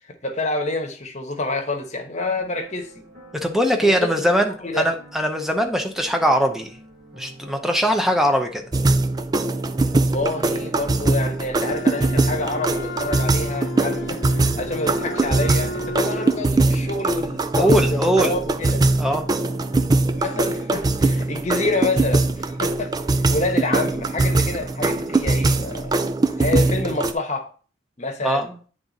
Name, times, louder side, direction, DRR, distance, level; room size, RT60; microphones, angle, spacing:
voice 1, 0.1-3.0 3.8-4.9 9.9-18.8 20.1-26.0 26.4-27.5 28.0-28.5, left 2 dB, 35° left, 1.0 m, -28 dB
sound 1, 2.2-21.8, right 1 dB, 50° right, 1.9 m, -47 dB
voice 2, 3.4-6.8 7.2-8.7 17.6-18.3 19.0-19.2 28.2-28.5, equal, ahead, 0.7 m, -21 dB
sound 2, 8.7-27.1, right 2 dB, 20° right, 0.3 m, -21 dB
Wind instrument woodwind instrument, 11.6-16.5, left 3 dB, 80° left, 0.6 m, -33 dB
8.7 x 3.7 x 4.0 m
head